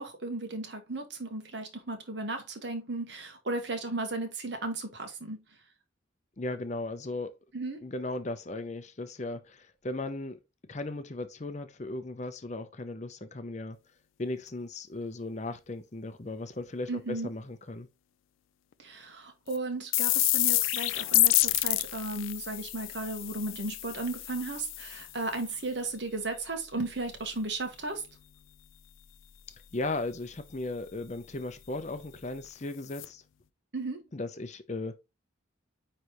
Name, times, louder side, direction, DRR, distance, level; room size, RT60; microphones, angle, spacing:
voice 1, 0.0-5.4 7.5-7.8 16.9-17.3 18.8-28.0 33.7-34.0, right 2 dB, 60° right, 1.5 m, -35 dB
voice 2, 6.4-7.3 7.8-10.4 10.7-13.8 14.2-17.9 29.7-33.2 34.1-35.0, left 2 dB, 35° left, 0.6 m, -36 dB
sound 1, 19.5-19.6 19.9-25.5 32.4-32.5 32.9-33.1, left 18 dB, 80° left, 0.4 m, -28 dB
9.5 x 3.3 x 3.0 m
head